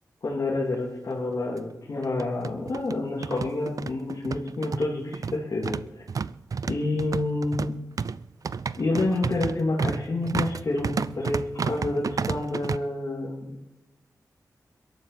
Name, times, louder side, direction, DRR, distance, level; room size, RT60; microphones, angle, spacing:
voice 1, 0.2-5.8 6.7-7.8 8.8-13.4, left 2 dB, 55° left, -5 dB, 3.0 m, -28 dB
sound 1, 0.7-0.8 1.1-1.2 2.0-12.8, right 5 dB, 55° right, 0.5 m, -31 dB
22.0 x 12.0 x 4.3 m, 0.97 s
cardioid pair, 70°, 7 cm